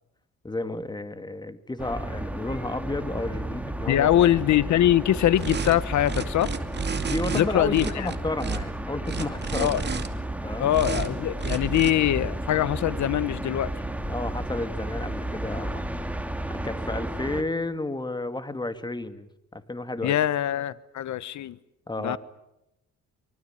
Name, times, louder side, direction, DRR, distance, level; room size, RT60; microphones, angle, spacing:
voice 1, 0.4-4.1 7.0-9.8 10.4-10.7 14.0-15.9 16.5-20.3 21.9-22.2, left 2 dB, 15° left, 10 dB, 2.3 m, -32 dB
sound 1, 1.8-17.4, right 1 dB, 5° right, 2.7 m, -33 dB
voice 2, 3.9-6.5 7.3-8.1 9.6-9.8 10.6-13.7 20.0-21.6 22.0-22.2, left 12 dB, 70° left, 17 dB, 1.1 m, -23 dB
sound 2, 5.4-7.7, left 4 dB, 45° left, 3.3 m, -45 dB
sound 3, 5.4-5.7 6.0-7.4 7.7-8.6 9.0-10.1 10.7-11.1 11.4-11.9, right 5 dB, 35° right, 2.5 m, -30 dB
24.5 x 24.0 x 9.1 m, 0.87 s
cardioid pair, 90°, 30 cm